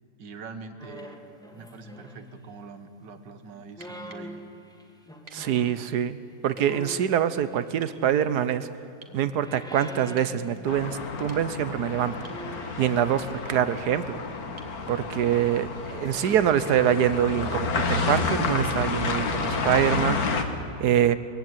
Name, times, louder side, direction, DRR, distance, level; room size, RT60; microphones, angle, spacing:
voice 1, 0.2-1.2 1.5-4.4 16.1-16.3, right 4 dB, 85° right, 9 dB, 2.0 m, -43 dB
sound 1, 0.8-2.5 3.5-5.8 6.5-8.6 9.0-11.1 11.4-11.6 12.2-14.3 15.2-16.5 17.2-19.2 19.5-20.0 20.5-20.6, equal, ahead, 1.9 m, -46 dB
sound 2, 3.8-4.3 5.3-5.5 6.5-6.7 7.8-8.0 9.0-9.2 10.2-10.4 11.1-11.7 12.2-12.5 14.6-14.8 16.7-16.8, right 4 dB, 45° right, 2.0 m, -51 dB
voice 2, 5.3-6.2 6.4-8.7 9.1-12.1 12.8-14.2 14.9-20.2 20.8-21.2, right 9 dB, 70° right, 14 dB, 1.4 m, -24 dB
sound 3, 10.7-20.4, left 4 dB, 60° left, 1.9 m, -30 dB
21.5 x 16.0 x 9.3 m, 3.0 s
omnidirectional pair, 1.8 m